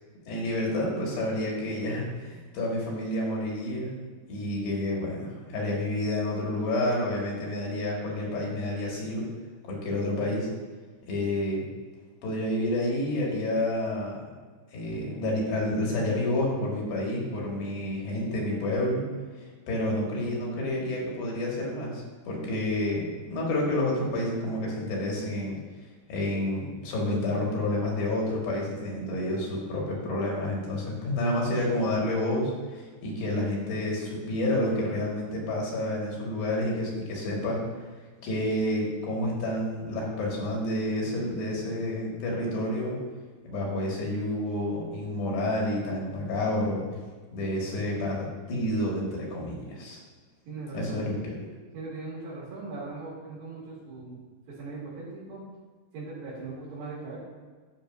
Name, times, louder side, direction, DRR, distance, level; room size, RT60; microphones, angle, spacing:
voice 1, 0.3-3.9 4.3-9.3 9.7-10.5 11.1-11.6 12.2-14.2 14.7-19.0 19.7-25.6 26.1-37.6 38.2-43.0 43.5-46.8 47.3-50.0 50.7-51.3, left 1 dB, 75° left, -2 dB, 3.9 m, -29 dB
voice 2, 50.5-51.1 51.7-54.2 54.6-55.4 55.9-57.2, right 3 dB, 75° right, -8 dB, 4.5 m, -39 dB
13.5 x 6.7 x 2.6 m, 1.5 s
omnidirectional pair, 4.9 m